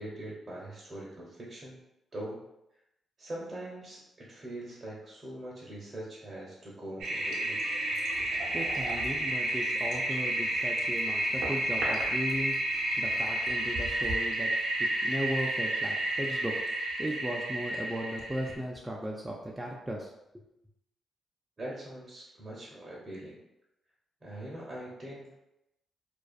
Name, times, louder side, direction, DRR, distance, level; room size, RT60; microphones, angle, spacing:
voice 1, 0.0-1.8 2.1-2.4 3.2-7.6 21.6-23.4 24.2-25.3, right 1 dB, 40° right, -5 dB, 0.7 m, -42 dB
Toilet flush, 7.0-18.5, right 1 dB, 75° right, 0.7 m, -31 dB
voice 2, 8.2-12.6 13.0-14.5 14.8-16.6 17.0-20.4, equal, 10° right, -2 dB, 0.4 m, -36 dB
2.5 x 2.3 x 2.3 m, 0.87 s
cardioid pair, 65°, 0 cm